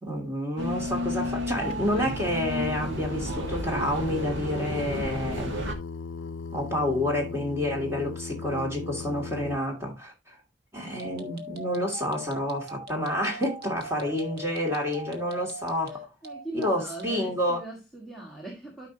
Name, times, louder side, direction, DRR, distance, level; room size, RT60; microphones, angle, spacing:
voice 1, 0.0-5.7 6.5-10.4 10.7-16.1 16.5-17.6, left 1 dB, 15° right, 2.6 m, -29 dB
sound 1, 0.6-5.7, equal, 85° right, 1.9 m, -32 dB
Singing, 1.7-9.6, left 4 dB, 90° left, 0.5 m, -38 dB
sound 2, 10.9-17.2, right 1 dB, 55° right, 1.3 m, -41 dB
voice 2, 15.9-18.9, right 1 dB, ahead, 1.6 m, -40 dB
12.5 x 5.0 x 2.9 m
head